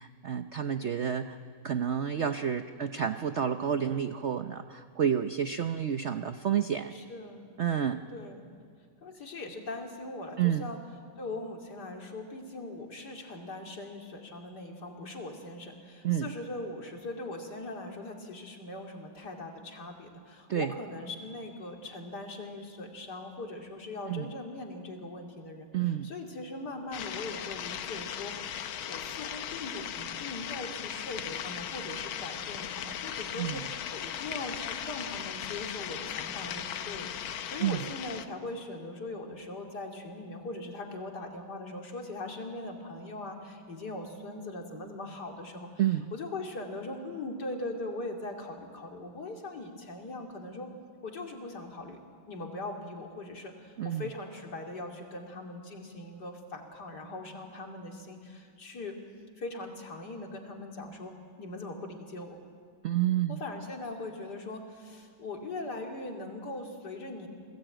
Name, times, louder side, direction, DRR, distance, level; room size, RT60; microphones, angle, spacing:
voice 1, 0.0-1.4 1.6-6.9 7.6-8.0 10.4-10.7 16.0-16.3 20.5-20.7 24.1-24.3 25.7-26.1 33.4-33.6 37.6-37.9 45.8-46.1 53.8-54.1 62.8-63.4, right 9 dB, 70° right, 8 dB, 0.6 m, -29 dB
voice 2, 6.9-7.5 8.1-8.4 9.0-10.8 11.2-45.8 46.1-50.7 51.0-52.0 52.3-59.0 59.4-62.4 63.3-67.3, left 2 dB, 55° left, 2 dB, 3.2 m, -40 dB
sound 1, 26.9-38.3, left 9 dB, 80° left, 1.8 m, -38 dB
28.0 x 20.0 x 9.0 m, 2.2 s
omnidirectional pair, 2.2 m